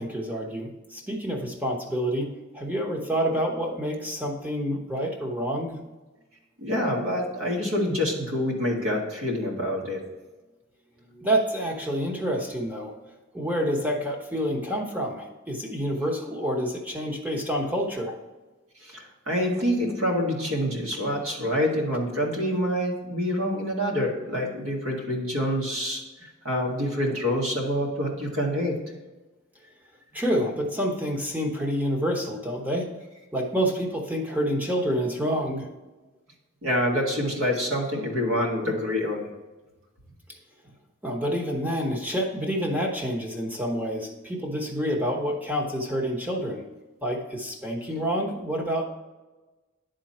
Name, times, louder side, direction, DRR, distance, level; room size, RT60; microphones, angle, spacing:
voice 1, 0.0-5.8 11.0-12.9 13.3-18.2 30.1-32.9 33.3-35.7 41.0-46.6 47.0-48.8, equal, 10° right, 0 dB, 0.9 m, -28 dB
voice 2, 6.6-10.0 18.8-28.8 36.6-39.3, equal, 70° right, -1 dB, 1.9 m, -26 dB
10.5 x 3.8 x 4.3 m, 1.2 s
head